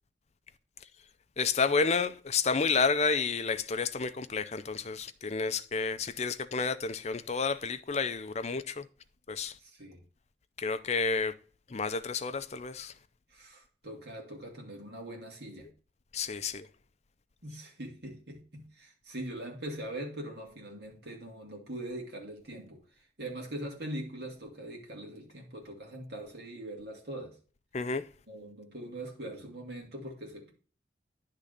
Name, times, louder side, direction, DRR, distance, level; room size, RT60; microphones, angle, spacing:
voice 1, 1.4-8.9 9.3-9.6 10.6-11.3 11.7-12.9 16.1-16.7 27.7-28.0, left 4 dB, 35° left, 0.5 m, -30 dB
voice 2, 9.6-10.0 13.3-15.7 17.4-27.4 28.3-30.5, right 1 dB, 60° right, 2.5 m, -42 dB
10.0 x 3.7 x 6.6 m
head